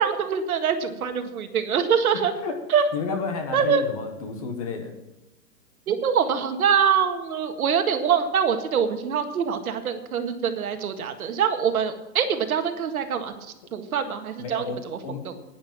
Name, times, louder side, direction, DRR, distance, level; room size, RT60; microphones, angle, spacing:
voice 1, 0.0-2.3 2.7-2.8 3.5-3.8 5.9-13.5 13.7-14.7 15.2-15.4, right 7 dB, 60° right, 7 dB, 1.8 m, -24 dB
voice 2, 2.9-4.9 14.4-15.3, left 5 dB, 20° left, 5 dB, 1.2 m, -31 dB
11.0 x 10.0 x 7.3 m, 1.0 s
hypercardioid pair, 180°, 48 cm